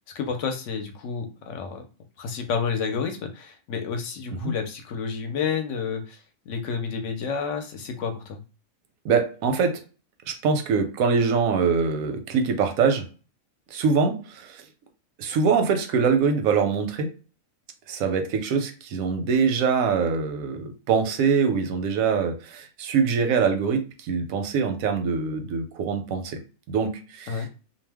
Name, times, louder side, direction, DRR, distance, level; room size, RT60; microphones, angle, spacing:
voice 1, 0.1-1.8 2.2-6.2 6.5-8.4 27.3-27.5, left 6 dB, 70° left, 0.9 m, -30 dB
voice 2, 9.0-9.8 10.3-13.1 13.7-14.6 15.2-17.1 17.9-26.4 26.7-27.5, right 5 dB, 90° right, 1.0 m, -24 dB
2.5 x 2.1 x 3.3 m
omnidirectional pair, 1.4 m